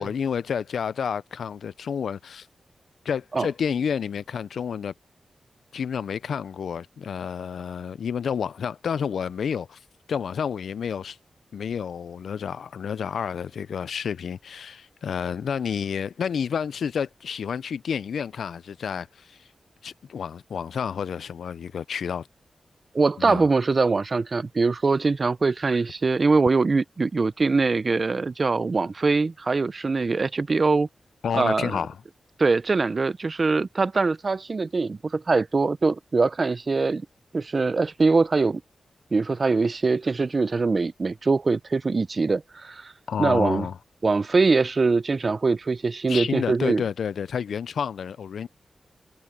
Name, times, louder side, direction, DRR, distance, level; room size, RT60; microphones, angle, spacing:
voice 1, 0.0-2.5 3.1-4.9 5.7-9.8 10.1-11.2 11.5-19.5 19.8-22.3 23.2-23.4 31.2-32.0 43.1-43.8 46.1-48.5, left 7 dB, 90° left, 0.4 m, -30 dB
voice 2, 22.9-30.9 31.3-31.7 32.4-37.0 37.3-38.6 39.1-42.9 43.2-43.6 44.0-46.8, right 4 dB, 45° right, 0.5 m, -23 dB
cardioid pair, 70°, 0 cm